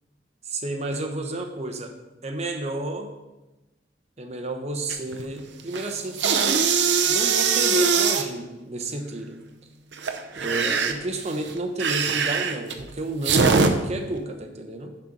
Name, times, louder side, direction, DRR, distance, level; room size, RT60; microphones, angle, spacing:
voice 1, 0.4-1.9 2.2-3.1 4.2-6.7 7.0-9.4 10.3-14.9, right 2 dB, 40° right, 5 dB, 1.0 m, -31 dB
sound 1, 4.9-5.3 5.6-8.2 9.9-13.7, right 5 dB, 80° right, 0.7 m, -22 dB
10.0 x 4.4 x 5.3 m, 1.1 s
head